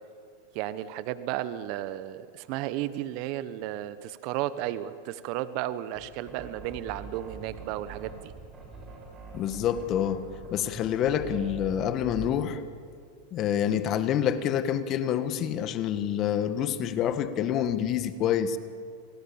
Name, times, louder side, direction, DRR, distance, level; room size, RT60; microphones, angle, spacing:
voice 1, 0.5-8.3, right 13 dB, 55° right, 14 dB, 1.1 m, -33 dB
sound 1, 6.0-12.6, right 3 dB, 25° right, 7.4 m, -43 dB
voice 2, 9.3-10.2 10.5-12.6 13.3-18.6, left 9 dB, 40° left, 11 dB, 1.7 m, -27 dB
28.5 x 19.0 x 7.2 m, 2.2 s
hypercardioid pair, 110°, 0 cm